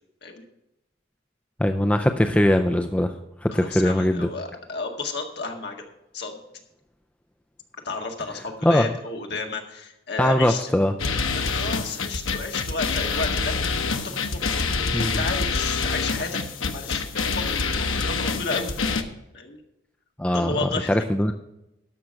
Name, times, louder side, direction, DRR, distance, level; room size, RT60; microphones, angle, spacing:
voice 1, 1.6-3.1 3.4-4.3 8.6-8.9 10.2-11.0 14.9-15.3 20.2-21.3, left 1 dB, 5° left, 6 dB, 0.4 m, -21 dB
voice 2, 3.5-5.8 6.1-6.3 7.9-10.7 11.4-14.9 15.2-16.4 16.7-18.7 19.3-19.6 20.3-21.1, left 3 dB, 55° left, 2 dB, 1.8 m, -32 dB
sound 1, 11.0-19.0, left 4 dB, 85° left, 1.0 m, -26 dB
13.0 x 5.9 x 6.4 m, 0.88 s
head